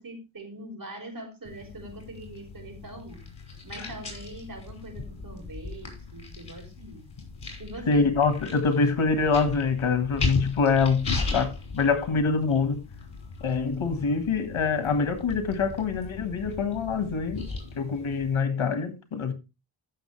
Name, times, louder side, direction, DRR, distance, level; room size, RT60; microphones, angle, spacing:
voice 1, 0.0-3.2 3.6-7.0 7.6-8.1, right 1 dB, 45° right, 4.8 m, -42 dB
sound 1, 1.4-18.4, left 3 dB, 55° left, 5.6 m, -37 dB
voice 2, 7.9-12.8 13.4-17.5 17.8-19.3, left 4 dB, 85° left, 1.7 m, -25 dB
15.5 x 6.5 x 3.3 m
wide cardioid pair, 80°, 47 cm